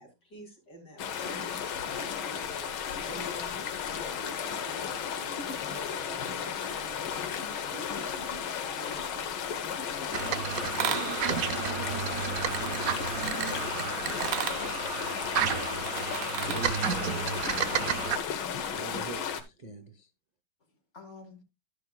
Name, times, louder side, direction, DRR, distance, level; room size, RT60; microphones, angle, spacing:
voice 1, 0.0-12.7, right 1 dB, 50° left, 4.1 m, -50 dB
sound 1, 1.0-19.4, left 7 dB, 75° left, 1.9 m, -34 dB
sound 2, 10.1-18.2, right 8 dB, 65° right, 0.8 m, -31 dB
voice 2, 16.5-17.2 18.7-20.1, right 4 dB, 50° right, 0.5 m, -43 dB
voice 3, 17.0-17.7 20.7-21.4, left 4 dB, 35° left, 2.6 m, -50 dB
11.5 x 9.9 x 2.3 m
omnidirectional pair, 2.3 m